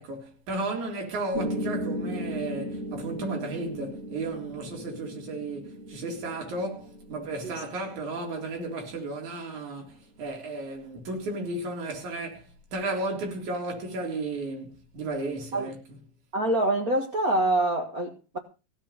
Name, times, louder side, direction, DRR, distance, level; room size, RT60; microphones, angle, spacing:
voice 1, 0.0-12.4 12.7-15.8, right 2 dB, 50° right, 4.8 m, -34 dB
Piano, 1.3-9.4, equal, 20° right, 2.1 m, -37 dB
voice 2, 16.3-18.4, right 1 dB, 80° right, 0.8 m, -25 dB
16.5 x 7.6 x 6.7 m
omnidirectional pair, 4.6 m